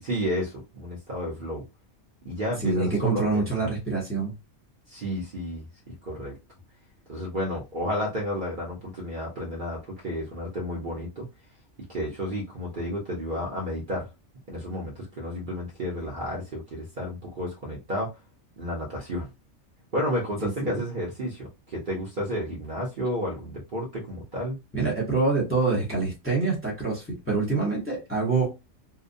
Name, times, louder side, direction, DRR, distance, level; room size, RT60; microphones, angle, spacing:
voice 1, 0.0-1.6 2.2-3.7 4.9-6.3 7.1-11.3 11.9-14.1 14.5-18.1 18.6-19.3 19.9-24.6, equal, 45° right, 0.8 m, -31 dB
voice 2, 2.6-4.3 20.4-20.5 24.7-28.5, right 3 dB, 10° left, 0.8 m, -25 dB
2.7 x 2.1 x 2.5 m
omnidirectional pair, 1.3 m